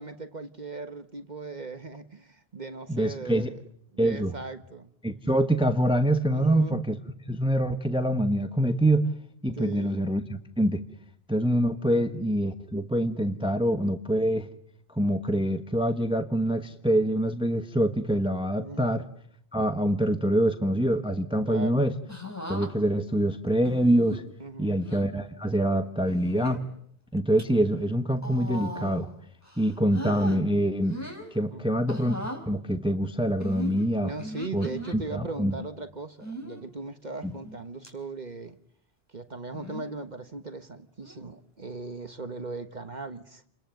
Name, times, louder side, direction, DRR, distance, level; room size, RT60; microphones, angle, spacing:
voice 1, 0.0-3.5 3.9-4.9 6.3-6.8 9.5-10.0 18.6-18.9 21.4-21.9 24.4-24.8 31.5-31.8 34.0-38.6 39.1-43.4, right 3 dB, 45° right, 1.4 m, -38 dB
voice 2, 2.9-3.5 4.0-4.4 5.0-6.9 7.3-9.1 9.4-10.8 11.3-14.5 14.9-19.0 19.5-21.9 22.5-24.2 24.6-26.6 27.1-29.1 29.6-31.0 31.3-34.1 34.5-34.7 34.9-35.5 37.2-37.3, right 1 dB, 5° right, 1.2 m, -25 dB
sound 1, 22.1-22.7 23.6-24.2 24.8-25.1 26.1-26.6 27.2-27.4 28.2-29.1 29.4-30.4 30.8-31.3 31.9-32.4 33.4-35.0 36.2-36.6 37.2-37.6 37.8-37.9 39.5-39.9 41.0-41.3, equal, 15° left, 3.9 m, -38 dB
29.5 x 21.5 x 9.2 m
omnidirectional pair, 1.0 m